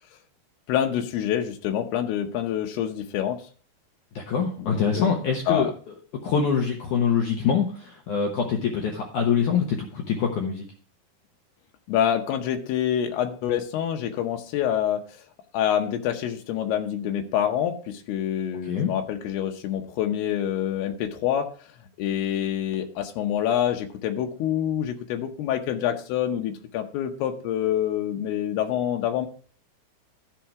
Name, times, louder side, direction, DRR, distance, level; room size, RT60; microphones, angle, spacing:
voice 1, 0.7-3.4 4.6-5.1 5.5-5.7 11.9-15.0 15.5-21.5 22.0-29.3, left 10 dB, 85° left, 4 dB, 2.9 m, -26 dB
voice 2, 4.2-5.7 6.2-10.6 18.6-18.9, left 6 dB, 65° left, 1 dB, 2.2 m, -24 dB
13.5 x 4.7 x 4.7 m, 0.43 s
omnidirectional pair, 4.5 m